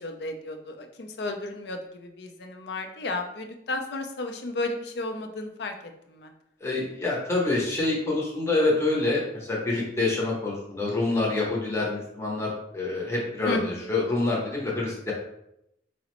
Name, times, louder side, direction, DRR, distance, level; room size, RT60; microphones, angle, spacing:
voice 1, 0.0-5.7 6.1-6.3 13.4-13.9, left 2 dB, 60° left, 5 dB, 0.4 m, -33 dB
voice 2, 6.6-15.1, left 2 dB, 15° left, -4 dB, 0.6 m, -26 dB
4.8 x 2.0 x 2.9 m, 0.80 s
head